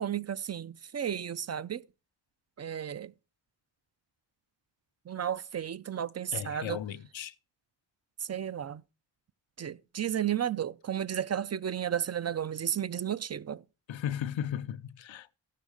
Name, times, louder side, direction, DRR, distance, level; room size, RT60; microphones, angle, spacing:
voice 1, 0.0-1.8 2.6-3.1 5.1-6.8 8.2-8.8 9.6-13.6, right 9 dB, 35° right, 0.4 m, -33 dB
voice 2, 6.3-7.3 13.9-15.3, left 10 dB, 85° left, 0.7 m, -36 dB
14.0 x 6.3 x 4.8 m
cardioid pair, 60°, 45 cm